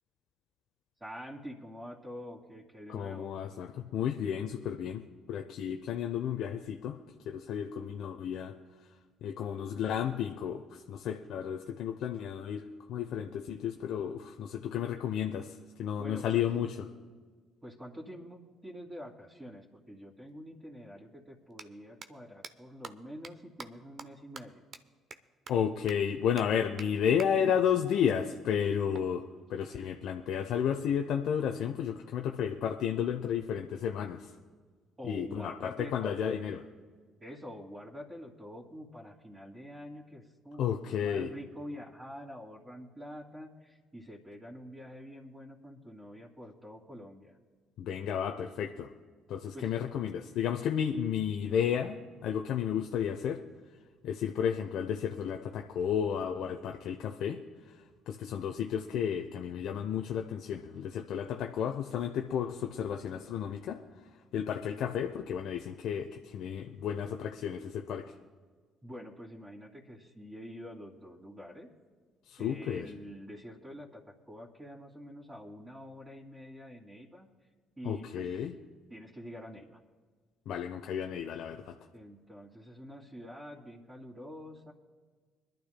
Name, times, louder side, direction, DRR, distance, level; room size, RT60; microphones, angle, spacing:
voice 1, 1.0-3.3 16.0-16.5 17.6-24.6 35.0-36.3 37.2-47.4 49.5-49.8 68.8-71.7 72.4-77.5 77.8-78.5 78.9-79.8 81.9-84.7, equal, 20° right, -6 dB, 2.5 m, -46 dB
voice 2, 2.9-7.0 7.2-8.6 9.2-16.7 25.5-34.3 35.0-36.6 40.6-41.3 47.8-48.9 49.3-53.4 54.0-57.4 58.1-63.8 64.3-68.1 72.3-72.9 77.8-78.5 80.5-81.7, left 8 dB, 65° left, 4 dB, 0.6 m, -32 dB
sound 1, 20.3-20.4 21.4-21.6 22.0-22.1 22.4-22.5 22.8-22.9 23.2-23.3 23.6-23.7 24.0-24.1 24.4-24.5 24.7-24.8 25.1-25.2 25.5-25.6 25.9-26.0 26.4-26.5 26.8-26.9 27.2-27.3 28.9-30.0, right 5 dB, 50° right, 0.8 m, -46 dB
25.0 x 12.0 x 2.2 m, 1.5 s
hypercardioid pair, 55°, 0 cm